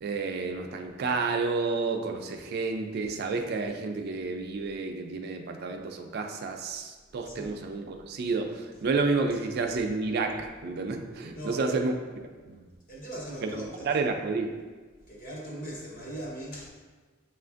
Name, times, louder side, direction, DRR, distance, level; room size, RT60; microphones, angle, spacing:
voice 1, 0.0-11.9 12.4-12.6 13.4-14.6, right 4 dB, 50° right, 5 dB, 0.3 m, -30 dB
voice 2, 11.3-11.8 12.9-13.9 15.1-16.7, right 1 dB, 45° left, -4 dB, 1.0 m, -39 dB
6.8 x 2.4 x 2.5 m, 1.4 s
head